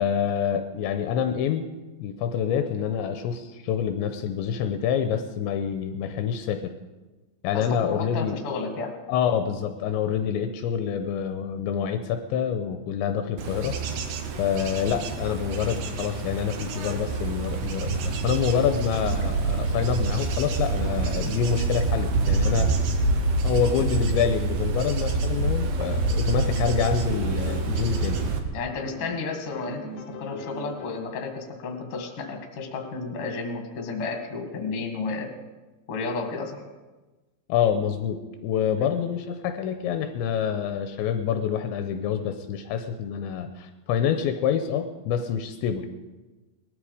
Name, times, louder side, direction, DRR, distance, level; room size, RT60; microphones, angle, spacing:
voice 1, 0.0-1.7 2.0-6.7 7.4-8.4 9.1-13.8 14.4-22.7 23.4-28.2 37.5-45.9, left 8 dB, 80° left, 8 dB, 2.9 m, -27 dB
voice 2, 7.5-8.9 23.1-23.2 28.5-29.9 30.2-35.3 35.9-36.6, left 4 dB, 45° left, 4 dB, 2.1 m, -32 dB
Bird / Insect / Wind, 13.4-28.4, right 3 dB, 80° right, 1.8 m, -26 dB
sound 1, 26.1-28.5 28.8-31.2, left 1 dB, 60° left, 2.2 m, -42 dB
19.5 x 14.0 x 4.9 m, 1.2 s
omnidirectional pair, 5.5 m